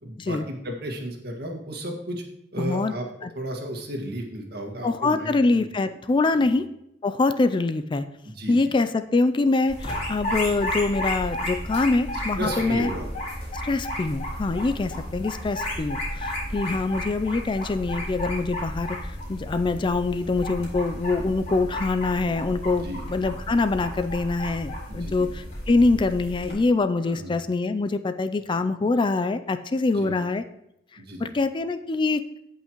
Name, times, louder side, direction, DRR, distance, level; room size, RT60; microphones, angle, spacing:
voice 1, 0.0-2.2 2.5-3.1 3.4-6.0 6.4-6.5 8.2-8.7 12.4-13.1 16.7-16.8 22.7-23.0 24.9-25.3 27.0-27.4 29.9-30.1 31.0-31.3, right 1 dB, 60° right, 2 dB, 1.8 m, -34 dB
voice 2, 2.6-2.9 3.2-3.3 4.8-6.7 7.0-8.0 8.5-12.9 13.6-30.4 31.2-32.2, left 3 dB, 25° left, 10 dB, 0.3 m, -24 dB
sound 1, 9.7-26.5, left 1 dB, 40° left, 3.8 m, -33 dB
16.0 x 5.6 x 3.0 m, 0.82 s
head